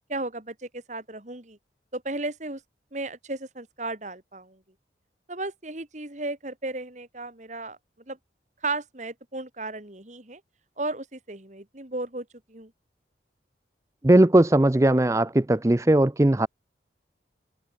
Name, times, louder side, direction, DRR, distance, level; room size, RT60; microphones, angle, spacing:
voice 1, 0.1-1.6 1.9-2.6 2.9-4.6 5.3-7.8 8.1-8.2 8.6-10.4 10.8-12.7, right 2 dB, 40° right, 2.2 m, -34 dB
voice 2, 14.0-16.5, right 1 dB, 15° right, 0.5 m, -19 dB
open air
head